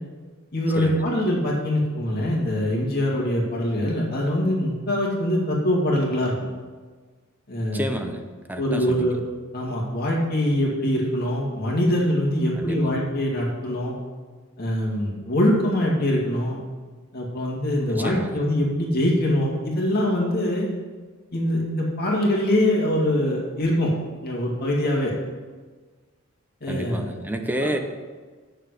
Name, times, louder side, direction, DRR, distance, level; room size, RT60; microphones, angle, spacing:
voice 1, 0.5-6.3 7.5-7.9 8.6-9.2 9.5-13.9 14.6-16.6 17.1-20.7 21.3-23.9 24.2-25.1 26.6-27.0, left 1 dB, 50° left, -3 dB, 2.3 m, -23 dB
voice 2, 7.7-8.2 8.5-9.2 12.6-12.9 17.9-18.4 26.7-27.8, right 1 dB, 10° right, 5 dB, 0.8 m, -30 dB
9.3 x 6.7 x 6.5 m, 1.4 s
head